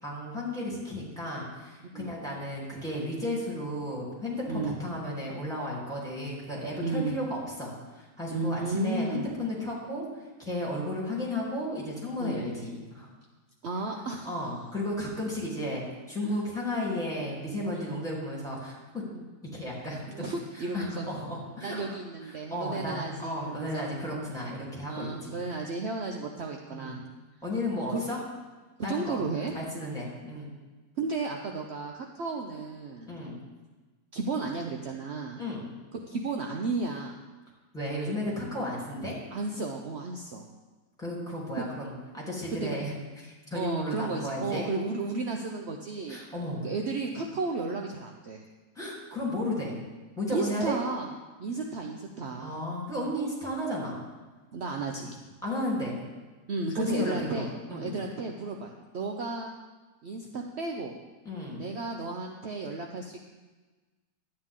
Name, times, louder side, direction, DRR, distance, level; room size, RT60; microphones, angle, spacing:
voice 1, 0.0-13.1 14.2-18.8 19.5-20.3 20.5-21.8 22.3-25.4 26.7-27.0 27.4-28.2 28.8-29.2 29.5-30.5 33.1-33.3 35.4-35.7 37.7-39.2 41.0-42.9 43.2-44.7 46.1-46.7 48.7-49.8 50.2-50.8 52.4-54.0 55.4-56.0 56.7-57.9 61.2-61.7, left 1 dB, ahead, -6 dB, 3.1 m, -34 dB
voice 2, 6.8-7.1 8.3-9.2 12.2-12.4 13.6-14.3 17.7-18.0 19.1-19.2 20.1-21.1 21.6-23.9 24.9-27.0 27.7-28.0 28.8-29.5 31.0-33.1 34.1-35.4 35.9-37.2 39.3-40.4 41.6-41.7 42.5-42.8 43.5-46.2 46.6-48.4 50.3-51.1 51.4-52.6 54.5-55.4 56.5-59.5 60.0-61.0 61.6-63.2, right 3 dB, 60° right, 2 dB, 0.7 m, -33 dB
12.5 x 9.0 x 3.7 m, 1.3 s
omnidirectional pair, 1.9 m